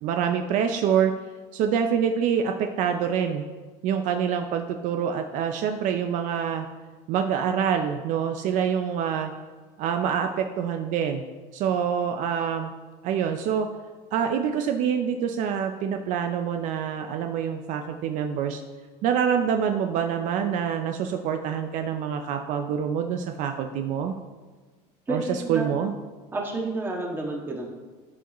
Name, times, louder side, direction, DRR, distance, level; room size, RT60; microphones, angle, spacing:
voice 1, 0.0-1.1 1.5-3.4 3.8-6.7 7.1-9.3 9.8-11.2 11.5-12.7 13.0-13.7 14.1-18.6 19.0-24.1 25.1-25.9, right 8 dB, 60° right, 6 dB, 0.5 m, -26 dB
voice 2, 25.1-25.7 26.3-27.7, right 2 dB, 15° right, -1 dB, 1.5 m, -30 dB
13.5 x 4.7 x 3.0 m, 1.3 s
cardioid pair, 130°, 15 cm